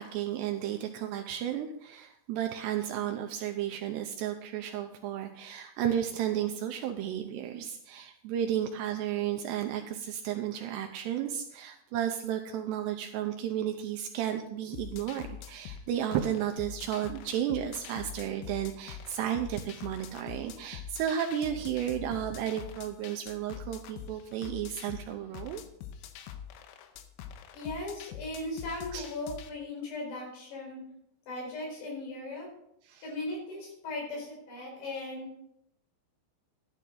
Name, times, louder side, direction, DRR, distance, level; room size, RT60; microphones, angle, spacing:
voice 1, 0.0-25.6 28.9-29.1 32.9-33.0, right 10 dB, 90° right, 4 dB, 2.5 m, -33 dB
sound 1, 14.7-29.5, left 9 dB, 80° left, 3.2 m, -44 dB
voice 2, 27.5-30.8 31.3-32.5 33.0-35.3, left 2 dB, 60° left, -1 dB, 6.3 m, -38 dB
13.0 x 11.0 x 3.8 m, 0.75 s
omnidirectional pair, 5.6 m